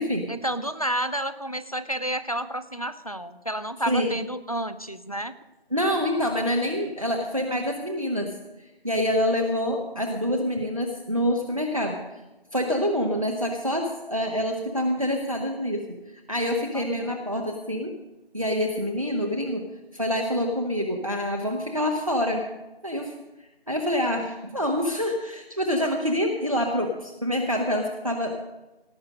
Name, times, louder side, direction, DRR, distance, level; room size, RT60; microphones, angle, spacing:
voice 1, 0.3-5.3 16.7-17.2, right 1 dB, 35° left, 13 dB, 0.7 m, -30 dB
voice 2, 5.7-8.3 8.6-12.0 12.5-18.0 18.3-19.7 19.9-22.5 22.8-23.2 23.7-28.3, equal, 35° right, 1 dB, 1.1 m, -26 dB
17.5 x 7.9 x 6.5 m, 1.0 s
figure-of-eight pair, 175°, 31 cm